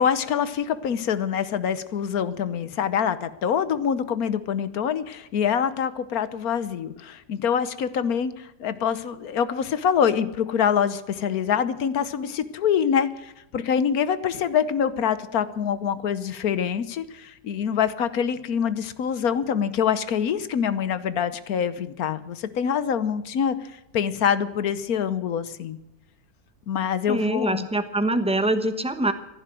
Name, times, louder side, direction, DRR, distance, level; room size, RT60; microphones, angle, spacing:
voice 1, 0.0-23.5 23.9-25.8 26.7-27.7, left 8 dB, 60° left, 14 dB, 1.2 m, -25 dB
voice 2, 27.1-29.1, right 1 dB, 5° right, 9 dB, 0.6 m, -24 dB
15.5 x 11.5 x 7.5 m, 0.92 s
omnidirectional pair, 2.0 m